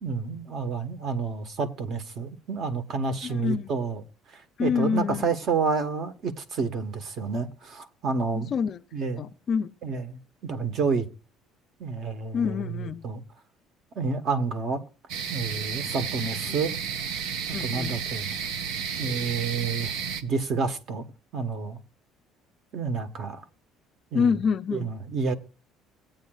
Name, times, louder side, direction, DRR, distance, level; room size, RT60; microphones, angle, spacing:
voice 1, 0.0-4.0 4.3-8.5 8.9-9.3 9.8-11.1 11.8-13.2 13.9-14.8 15.3-16.7 17.6-18.3 19.0-19.9 20.2-21.1 21.3-21.8 22.7-23.4 24.1-24.3 24.7-25.3, right 4 dB, 40° right, 1.2 m, -29 dB
voice 2, 3.2-3.7 4.6-5.3 8.3-8.8 9.2-9.7 12.3-13.1 16.5-16.6 17.5-17.9 24.1-24.9, left 6 dB, 30° left, 0.5 m, -27 dB
sound 1, 15.1-20.2, right 7 dB, 70° right, 1.1 m, -32 dB
17.0 x 8.8 x 2.3 m
cardioid pair, 170°, 0 cm